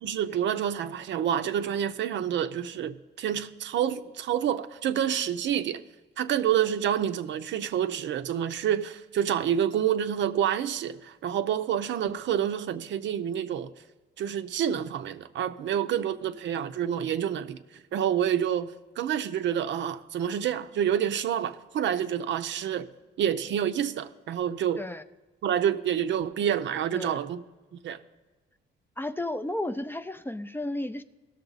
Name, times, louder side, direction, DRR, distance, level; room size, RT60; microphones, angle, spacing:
voice 1, 0.0-5.8 6.2-13.7 14.2-17.6 17.9-22.9 23.2-24.8 25.4-27.4 27.7-28.0, right 9 dB, 70° right, 0.6 m, -28 dB
voice 2, 29.0-31.0, left 1 dB, 10° left, 0.4 m, -33 dB
17.0 x 6.6 x 4.0 m
cardioid pair, 90°, 20 cm